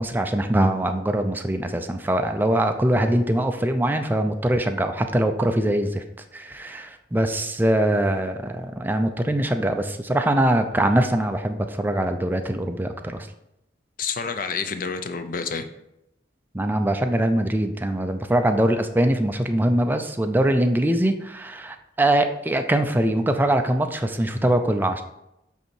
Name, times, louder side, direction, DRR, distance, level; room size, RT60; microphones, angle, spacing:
voice 1, 0.0-6.0 6.3-13.3 16.5-25.0, right 1 dB, 10° right, 7 dB, 0.4 m, -22 dB
voice 2, 14.0-15.7, left 5 dB, 50° left, 8 dB, 0.5 m, -28 dB
8.0 x 2.8 x 4.4 m, 0.86 s
head